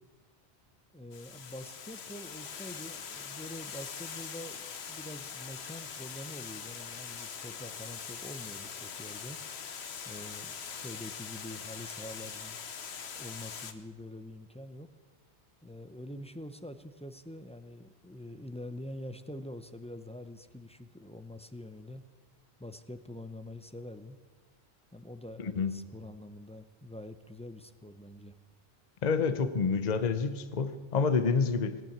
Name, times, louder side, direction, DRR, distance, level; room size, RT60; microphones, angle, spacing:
voice 1, 0.9-9.4 10.0-12.6 13.1-14.9 15.6-22.0 22.6-24.2 24.9-28.3, left 1 dB, 10° left, 9 dB, 0.5 m, -45 dB
Water, 1.1-13.7, left 6 dB, 85° left, 1.2 m, -42 dB
voice 2, 25.4-25.8 29.0-31.8, left 5 dB, 45° left, 11 dB, 0.8 m, -28 dB
18.0 x 9.2 x 8.6 m, 1.4 s
omnidirectional pair, 1.1 m